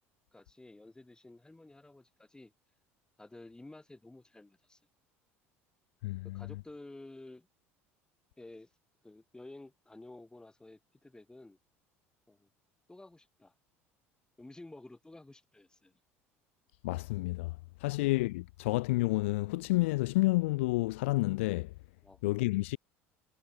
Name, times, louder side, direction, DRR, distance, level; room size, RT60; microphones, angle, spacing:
voice 1, 0.3-2.5 3.2-4.8 6.3-7.5 8.4-8.7 9.0-11.6 12.3-12.5 12.9-13.5 14.4-15.9 17.9-18.0 22.0-22.3, left 2 dB, 10° left, 5.0 m, -52 dB
voice 2, 6.0-6.5 16.8-21.7 22.2-22.8, left 21 dB, 70° left, 0.4 m, -30 dB
figure-of-eight pair, 65°, 7 cm